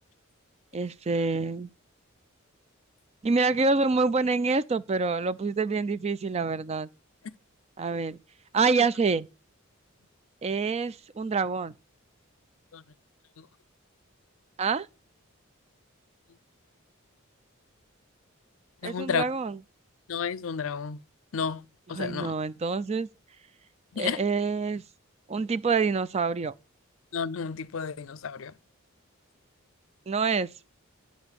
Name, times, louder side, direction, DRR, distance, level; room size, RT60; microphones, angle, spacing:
voice 1, 0.7-1.7 3.2-6.9 7.8-8.2 8.5-9.3 10.4-11.7 14.6-14.9 18.8-19.6 21.9-23.1 24.0-24.8 25.3-26.5 30.1-30.5, right 4 dB, 30° right, 0.4 m, -26 dB
voice 2, 18.8-19.2 20.1-21.0 21.3-21.6 21.9-22.3 23.9-24.2 27.1-28.5, left 6 dB, 70° left, 0.5 m, -31 dB
10.0 x 5.1 x 6.7 m
head